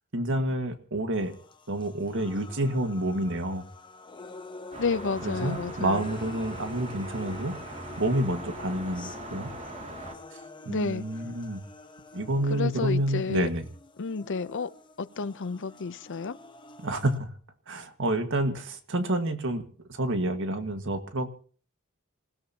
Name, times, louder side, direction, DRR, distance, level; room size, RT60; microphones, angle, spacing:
voice 1, 0.1-1.3 1.7-3.6 5.2-9.5 10.3-11.6 12.1-13.7 16.8-17.3 17.7-19.6 19.9-21.3, right 1 dB, 60° right, 7 dB, 1.8 m, -29 dB
sound 1, 1.2-17.2, left 3 dB, 20° left, 0.9 m, -46 dB
sound 2, 4.7-10.1, right 2 dB, 35° right, 2.6 m, -41 dB
voice 2, 4.8-6.0 10.7-11.0 12.5-13.5 14.0-14.7 15.0-16.4, left 4 dB, 60° left, 15 dB, 0.6 m, -31 dB
27.5 x 16.5 x 2.9 m, 0.44 s
head